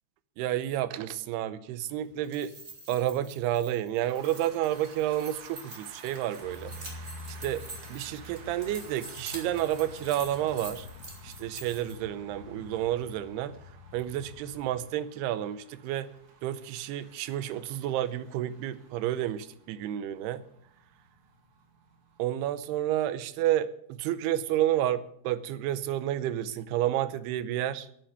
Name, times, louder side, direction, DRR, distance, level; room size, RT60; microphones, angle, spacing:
voice 1, 0.4-2.5 2.9-6.7 7.4-7.6 7.9-10.9 11.2-13.5 13.9-16.1 16.4-20.4 22.2-27.9, right 12 dB, 85° right, 14 dB, 2.8 m, -30 dB
sound 1, 2.1-11.9, right 2 dB, 20° right, 2.6 m, -46 dB
sound 2, 4.0-22.6, right 5 dB, 50° right, 1.7 m, -53 dB
sound 3, 6.4-14.7, left 3 dB, 70° left, 3.1 m, -47 dB
11.5 x 8.8 x 9.3 m, 0.69 s
omnidirectional pair, 4.6 m